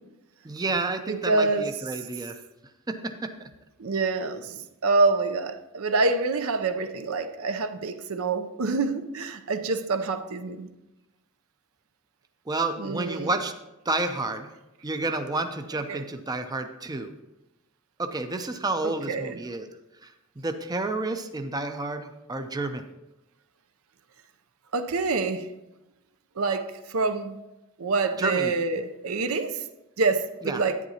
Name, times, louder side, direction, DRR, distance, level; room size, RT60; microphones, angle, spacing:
voice 1, 0.4-2.4 2.9-3.5 12.5-13.5 13.9-14.5 14.8-17.1 18.0-19.7 20.0-22.8 28.2-28.5 30.4-30.6, right 2 dB, 20° right, 0.5 m, -30 dB
voice 2, 1.1-1.7 3.8-10.7 12.8-13.3 15.9-16.0 18.8-19.4 24.7-25.5 26.4-27.4 27.8-29.7 30.0-30.8, right 3 dB, 70° right, 0.6 m, -26 dB
11.0 x 9.1 x 2.8 m
head